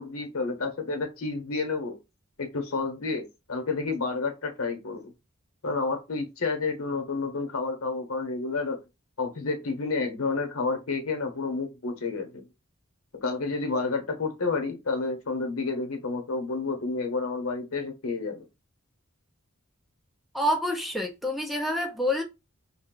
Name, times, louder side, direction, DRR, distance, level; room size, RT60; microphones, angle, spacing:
voice 1, 0.0-2.0 2.4-5.1 5.6-8.8 9.2-12.5 13.2-18.4, left 3 dB, 85° left, 0.9 m, -30 dB
voice 2, 20.3-22.2, left 1 dB, ahead, 0.4 m, -27 dB
2.4 x 2.2 x 3.6 m
head